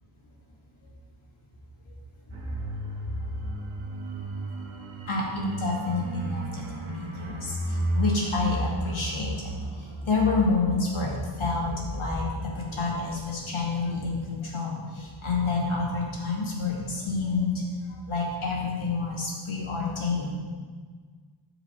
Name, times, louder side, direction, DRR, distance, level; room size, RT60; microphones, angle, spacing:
sound 1, 2.3-14.7 15.0-15.1, right 1 dB, 85° right, 1.2 m, -35 dB
voice 1, 5.1-9.5 10.0-17.5 18.1-20.4, left 3 dB, 80° left, -4 dB, 2.2 m, -28 dB
13.0 x 5.0 x 3.3 m, 1.6 s
wide cardioid pair, 65°, 48 cm